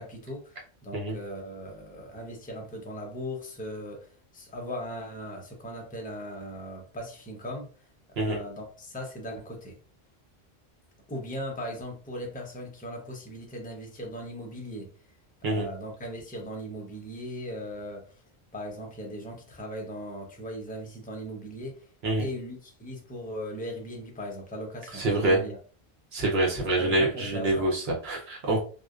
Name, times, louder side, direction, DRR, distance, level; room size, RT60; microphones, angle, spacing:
voice 1, 0.0-7.7 8.1-9.8 11.1-14.9 15.5-18.2 18.5-21.9 22.2-25.6 26.6-27.7, equal, 15° left, 0.3 m, -38 dB
voice 2, 24.9-25.4 26.1-28.6, right 2 dB, 75° right, 1.0 m, -26 dB
2.6 x 2.1 x 2.3 m
omnidirectional pair, 1.1 m